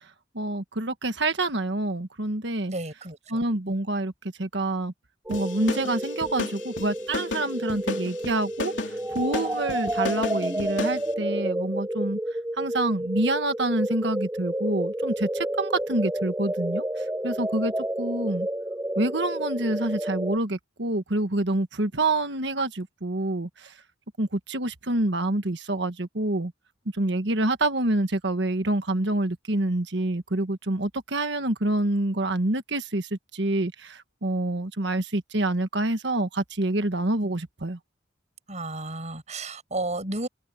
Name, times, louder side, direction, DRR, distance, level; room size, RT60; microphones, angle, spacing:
voice 1, 0.3-2.7 3.3-4.1 4.4-4.9 5.3-8.7 9.1-12.2 12.6-17.7 18.0-18.5 19.0-23.7 24.2-26.5 26.9-37.8, right 2 dB, 65° right, 1.5 m, -27 dB
voice 2, 2.7-3.2 38.5-40.3, right 2 dB, 40° right, 7.6 m, -32 dB
sound 1, 5.3-11.0, left 3 dB, 70° left, 3.2 m, -34 dB
sound 2, 5.3-20.4, right 1 dB, 10° right, 4.9 m, -30 dB
head